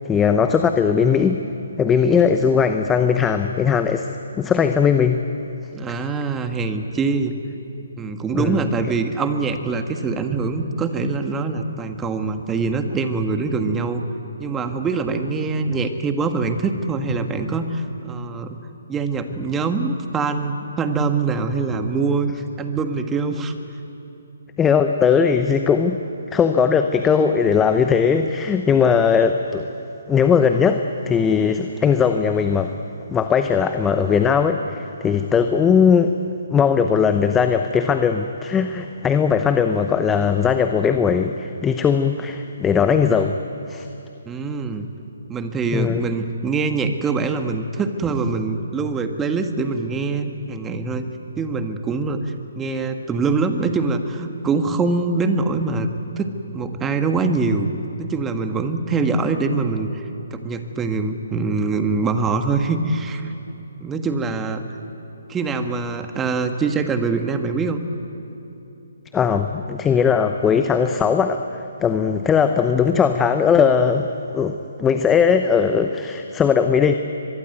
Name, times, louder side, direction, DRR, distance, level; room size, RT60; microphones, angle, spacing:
voice 1, 0.0-1.4 1.8-4.1 4.4-5.2 8.3-8.7 24.6-26.0 26.3-29.6 30.1-32.7 33.1-36.1 36.5-43.4 43.7-43.9 45.7-46.1 69.1-74.1 74.3-76.9, left 6 dB, 10° left, 7 dB, 0.9 m, -19 dB
voice 2, 5.7-7.4 8.0-14.0 14.4-18.6 18.9-22.3 22.6-23.5 44.2-44.9 45.3-51.1 51.4-57.7 58.0-60.0 60.3-63.3 63.8-64.6 65.3-67.8, right 4 dB, 10° right, 7 dB, 1.6 m, -24 dB
24.0 x 22.5 x 9.4 m, 2.9 s
figure-of-eight pair, 145°, 0 cm